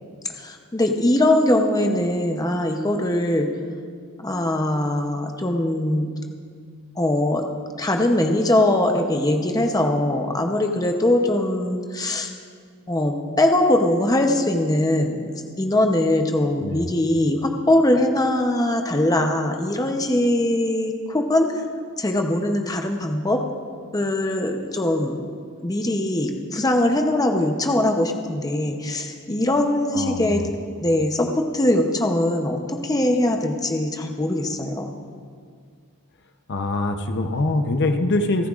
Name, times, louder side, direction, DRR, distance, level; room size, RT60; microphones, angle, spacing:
voice 1, 0.4-3.5 4.2-6.1 7.0-7.4 7.8-12.3 12.9-21.6 22.0-23.4 23.9-25.2 25.6-30.4 30.8-34.9, left 1 dB, 15° left, 3 dB, 0.7 m, -21 dB
voice 2, 29.9-30.4 36.5-38.5, left 2 dB, 50° left, 6 dB, 0.7 m, -23 dB
28.5 x 10.0 x 2.4 m, 2.1 s
head